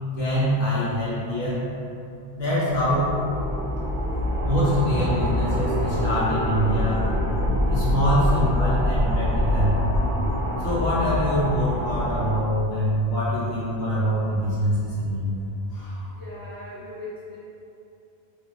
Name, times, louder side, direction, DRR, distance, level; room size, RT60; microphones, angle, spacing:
voice 1, 0.2-1.7 2.3-3.2 4.4-7.1 7.7-9.8 10.6-16.1, equal, 75° left, -9 dB, 1.2 m, -24 dB
sound 1, 2.7-12.3, left 1 dB, 10° left, 0.8 m, -25 dB
voice 2, 16.1-17.4, left 1 dB, 35° right, -8 dB, 0.3 m, -39 dB
3.5 x 2.4 x 2.9 m, 2.6 s
omnidirectional pair, 1.0 m